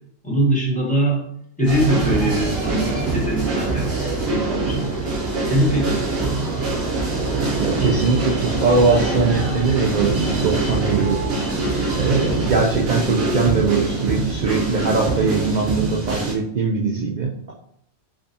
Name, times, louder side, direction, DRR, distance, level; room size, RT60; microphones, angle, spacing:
voice 1, 0.2-1.2 1.6-4.9 5.5-6.0, right 1 dB, 5° left, -5 dB, 1.0 m, -22 dB
sound 1, 1.7-16.3, right 3 dB, 50° right, 1.0 m, -23 dB
voice 2, 7.6-11.2 11.9-17.5, right 4 dB, 85° right, -2 dB, 0.4 m, -21 dB
3.5 x 3.2 x 2.7 m, 0.70 s
omnidirectional pair, 1.4 m